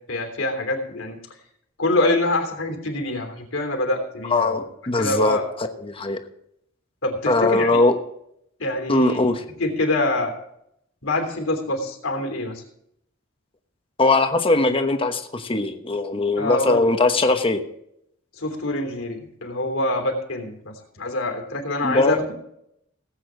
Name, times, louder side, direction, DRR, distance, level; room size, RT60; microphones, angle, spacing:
voice 1, 0.1-1.2 1.8-4.6 5.0-5.5 7.0-7.8 8.6-9.2 9.6-10.3 11.0-12.6 16.4-16.9 18.4-22.3, left 2 dB, 75° left, 3 dB, 3.3 m, -25 dB
voice 2, 4.3-6.2 7.3-8.0 8.9-9.4 14.0-17.6 21.8-22.2, left 2 dB, 25° left, 6 dB, 1.1 m, -20 dB
18.5 x 8.6 x 3.9 m, 0.75 s
head